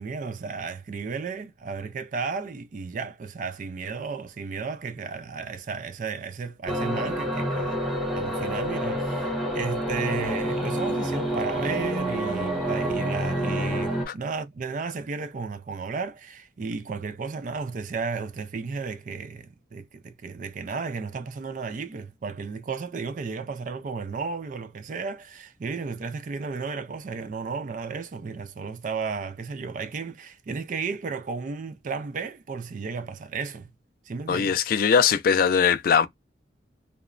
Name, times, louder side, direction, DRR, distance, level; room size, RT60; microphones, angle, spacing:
voice 1, 0.0-7.8 8.1-33.7 34.1-34.6, right 4 dB, 45° right, 0.4 m, -33 dB
sound 1, 6.7-14.0, right 1 dB, ahead, 0.7 m, -28 dB
voice 2, 34.3-36.1, left 7 dB, 50° left, 0.3 m, -21 dB
2.9 x 2.1 x 2.4 m
head